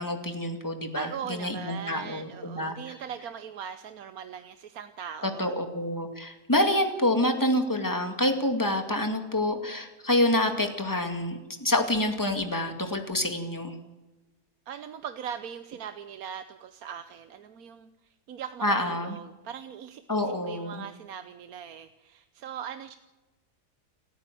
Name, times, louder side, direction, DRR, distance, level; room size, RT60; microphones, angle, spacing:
voice 1, 0.0-2.8 5.2-13.8 18.6-19.2 20.1-20.8, left 1 dB, 10° left, 5 dB, 2.2 m, -27 dB
voice 2, 0.9-5.5 14.7-17.9 18.3-23.0, right 8 dB, 65° right, 10 dB, 1.3 m, -40 dB
29.0 x 10.0 x 9.2 m, 1.1 s
omnidirectional pair, 1.7 m